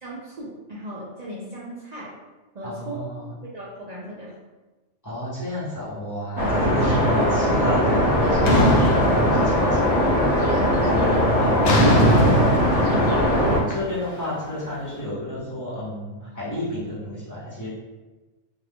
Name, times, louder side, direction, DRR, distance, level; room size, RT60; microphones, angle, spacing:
voice 1, 0.0-2.1 2.5-3.0 3.5-4.3 10.9-11.2 12.0-12.7, equal, 50° right, -7 dB, 0.5 m, -36 dB
voice 2, 2.6-3.3 5.0-9.9 10.8-11.6 13.4-17.7, equal, 15° left, -11 dB, 0.8 m, -31 dB
sound 1, 6.4-13.6, equal, 30° right, 1.2 m, -20 dB
sound 2, 8.4-10.0 10.3-10.8 11.6-14.7, equal, 85° left, 0.3 m, -21 dB
2.6 x 2.4 x 3.4 m, 1.2 s
omnidirectional pair, 1.4 m